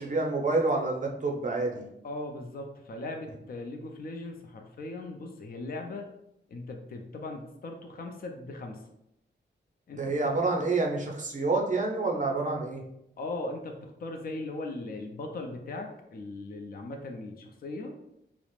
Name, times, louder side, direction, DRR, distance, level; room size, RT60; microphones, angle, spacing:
voice 1, 0.0-1.8 9.9-12.8, right 3 dB, 40° right, 0 dB, 0.5 m, -28 dB
voice 2, 2.0-6.1 6.5-8.8 9.9-10.1 13.2-17.9, left 2 dB, 50° left, 4 dB, 0.4 m, -39 dB
2.4 x 2.0 x 3.0 m, 0.81 s
wide cardioid pair, 95°, 19 cm